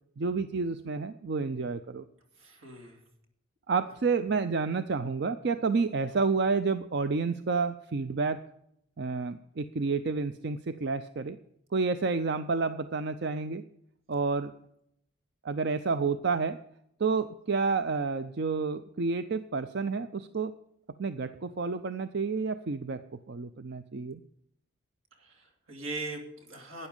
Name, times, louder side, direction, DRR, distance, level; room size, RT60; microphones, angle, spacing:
voice 1, 0.2-2.1 3.7-8.4 9.0-11.4 11.7-13.6 14.1-14.5 15.4-16.6 17.0-20.5 21.0-23.0 23.3-24.2, right 4 dB, 55° right, 11 dB, 0.5 m, -30 dB
voice 2, 2.4-3.0 25.1-26.9, right 2 dB, 80° right, 2 dB, 2.9 m, -40 dB
12.0 x 9.7 x 5.3 m, 0.73 s
head